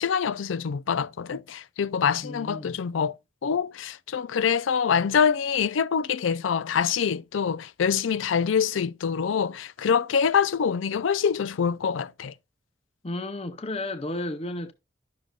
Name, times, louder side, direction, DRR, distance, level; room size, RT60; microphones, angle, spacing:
voice 1, 0.0-3.2 3.4-12.3, left 7 dB, 85° left, 0.4 m, -25 dB
voice 2, 2.2-2.7 13.0-14.7, left 1 dB, 30° left, 0.6 m, -33 dB
11.5 x 6.6 x 2.3 m
head